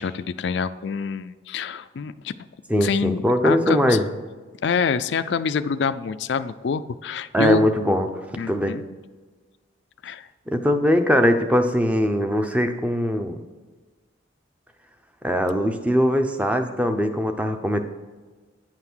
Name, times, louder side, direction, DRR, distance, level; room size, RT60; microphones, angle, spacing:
voice 1, 0.0-2.3 2.8-4.0 4.6-7.7 8.4-8.8 10.0-10.3, left 6 dB, 60° left, 12 dB, 0.4 m, -26 dB
voice 2, 2.7-4.1 7.3-8.1 8.5-8.8 10.5-13.4 15.2-17.8, equal, 5° right, 7 dB, 0.6 m, -21 dB
9.6 x 5.8 x 6.2 m, 1.3 s
head